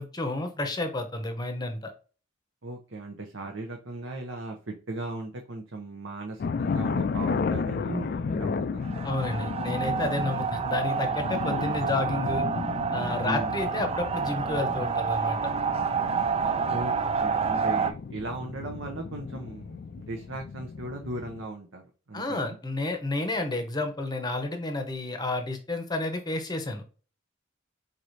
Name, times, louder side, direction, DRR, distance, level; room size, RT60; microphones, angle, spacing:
voice 1, 0.0-1.9 9.0-12.5 12.9-15.5 22.1-27.0, left 2 dB, 20° left, 6 dB, 0.8 m, -31 dB
voice 2, 2.6-9.1 13.2-13.6 16.7-16.9 17.2-21.8 22.1-22.6, right 2 dB, 65° right, 2 dB, 0.8 m, -37 dB
sound 1, 6.4-21.5, left 5 dB, 50° left, 0.3 m, -34 dB
sound 2, 8.8-17.9, right 5 dB, 30° right, 0.3 m, -29 dB
4.7 x 4.2 x 2.6 m, 0.37 s
head